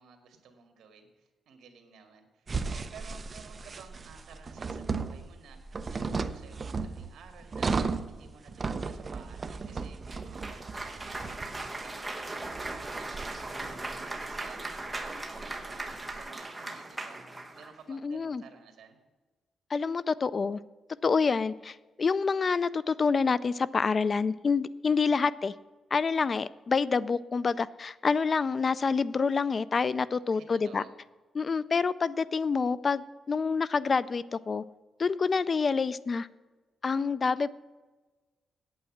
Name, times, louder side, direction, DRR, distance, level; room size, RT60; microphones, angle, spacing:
voice 1, 0.0-17.2 17.5-19.0 30.3-30.9, right 6 dB, 85° right, 5 dB, 1.9 m, -54 dB
sound 1, 2.5-16.2, right 4 dB, 30° right, 0.5 m, -36 dB
Cheering / Applause, 10.1-17.8, right 2 dB, 15° right, 1.0 m, -38 dB
voice 2, 17.9-18.4 19.7-20.6 21.0-25.5 25.9-30.8 31.4-34.6 35.0-36.3 36.8-37.5, left 5 dB, 35° left, 17 dB, 0.3 m, -27 dB
8.7 x 8.5 x 7.2 m, 1.3 s
cardioid pair, 145°, 0 cm